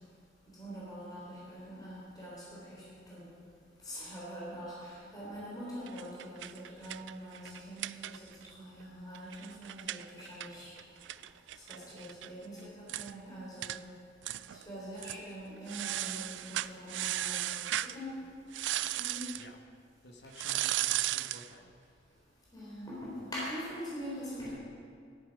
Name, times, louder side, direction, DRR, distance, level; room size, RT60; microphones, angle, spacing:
voice 1, 0.5-3.3 3.8-11.0 11.5-13.8 14.5-18.2 18.9-19.3 22.5-24.5, equal, 20° left, -7 dB, 3.7 m, -44 dB
sound 1, 5.9-8.5 8.8-8.9 9.1-12.3 12.6-12.7 12.9-13.1 13.6-13.8 14.2-14.6 15.0-15.2 15.7-18.0 18.5-19.5 20.3-21.5, right 14 dB, 70° right, 0.3 m, -36 dB
voice 2, 20.0-21.9, left 1 dB, 60° left, 3 dB, 1.5 m, -53 dB
13.5 x 11.5 x 5.3 m, 2.3 s
head